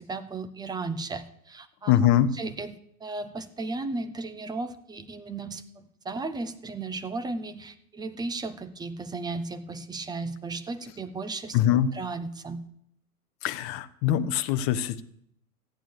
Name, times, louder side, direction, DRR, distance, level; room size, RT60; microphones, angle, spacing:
voice 1, 0.0-1.9 2.4-11.6 11.9-12.7, right 3 dB, 10° right, 11 dB, 0.8 m, -35 dB
voice 2, 1.9-2.3 11.5-11.9 13.4-15.0, left 11 dB, 30° left, 11 dB, 0.9 m, -23 dB
14.5 x 8.8 x 7.1 m, 0.71 s
figure-of-eight pair, 105°, 45 cm